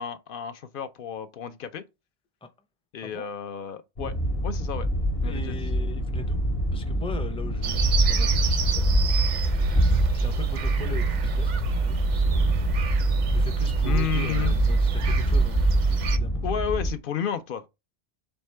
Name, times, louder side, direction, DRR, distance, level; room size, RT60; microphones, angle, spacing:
voice 1, 0.0-1.8 2.9-4.1 4.4-4.9 5.2-5.6 13.8-14.5 16.4-17.7, left 9 dB, 65° left, 0.7 m, -31 dB
sound 1, 4.0-16.9, equal, 45° left, 1.2 m, -26 dB
voice 2, 5.2-6.4 6.7-8.9 9.2-9.6 10.1-12.4 12.9-16.4, left 2 dB, 10° left, 0.4 m, -40 dB
sound 2, 7.6-16.2, right 6 dB, 55° right, 0.5 m, -26 dB
4.4 x 3.5 x 3.2 m
omnidirectional pair, 1.1 m